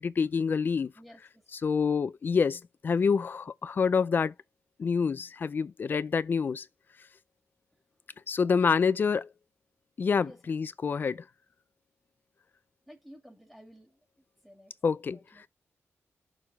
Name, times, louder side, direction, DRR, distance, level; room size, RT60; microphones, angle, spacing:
voice 1, 0.0-0.9 1.5-4.3 4.8-6.7 8.3-9.3 10.0-11.2 14.8-15.2, left 5 dB, 40° left, 0.4 m, -27 dB
voice 2, 1.0-1.4 8.4-8.7 10.2-10.4 12.9-13.9 14.4-14.7 15.1-15.5, equal, ahead, 2.1 m, -52 dB
6.7 x 3.9 x 5.8 m
wide cardioid pair, 155°, 5 cm